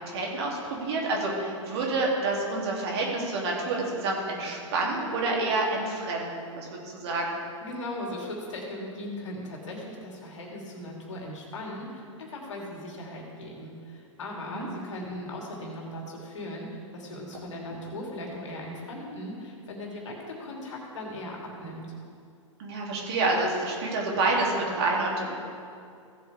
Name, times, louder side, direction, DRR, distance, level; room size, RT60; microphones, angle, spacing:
voice 1, 0.0-6.7 6.9-7.4 14.3-14.7 22.6-25.4, right 2 dB, 55° right, -2 dB, 2.7 m, -28 dB
voice 2, 7.6-21.9, left 1 dB, 65° left, -1 dB, 2.7 m, -38 dB
16.5 x 7.9 x 3.4 m, 2.4 s
figure-of-eight pair, 105°, 17 cm